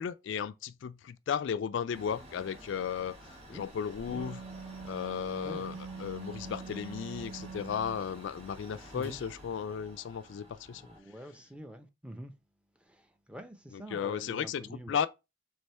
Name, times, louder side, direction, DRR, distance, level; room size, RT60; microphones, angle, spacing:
voice 1, 0.0-3.2 3.5-4.4 4.8-5.7 6.0-10.8 13.7-15.1, left 7 dB, 70° left, 0.3 m, -35 dB
Mechanical fan, 1.9-11.0, equal, 35° right, 1.5 m, -51 dB
Wind instrument woodwind instrument, 3.8-8.0, right 5 dB, 75° right, 0.7 m, -44 dB
voice 2, 5.4-5.8 8.9-9.2 10.7-12.3 12.8-15.0, equal, 5° right, 0.5 m, -46 dB
3.4 x 3.4 x 4.2 m
head